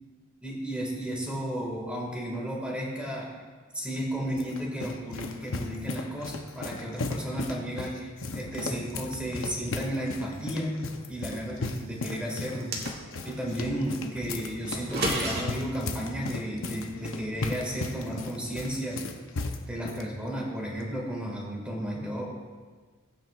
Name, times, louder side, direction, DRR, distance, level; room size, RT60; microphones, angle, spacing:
voice 1, 0.4-3.3 3.7-10.8 11.1-12.8 13.2-19.0 19.7-22.2, equal, 5° right, -3 dB, 2.0 m, -33 dB
sound 1, 3.9-20.1, left 2 dB, 75° left, 0.8 m, -36 dB
sound 2, 12.5-13.4 14.7-15.4, right 2 dB, 50° right, 1.7 m, -31 dB
16.5 x 8.9 x 2.4 m, 1.5 s
head